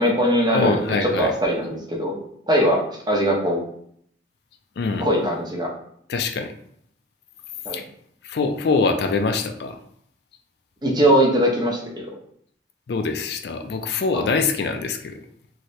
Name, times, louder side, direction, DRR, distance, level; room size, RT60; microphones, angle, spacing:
voice 1, 0.0-2.2 2.5-3.6 5.0-5.7 7.6-7.8 10.8-12.1 14.1-14.3, equal, 25° right, -2 dB, 0.7 m, -21 dB
voice 2, 0.5-1.3 4.8-5.1 6.1-6.5 7.7-7.8 8.2-9.8 12.9-15.2, left 4 dB, 60° left, 6 dB, 0.3 m, -24 dB
2.7 x 2.7 x 3.1 m, 0.67 s
head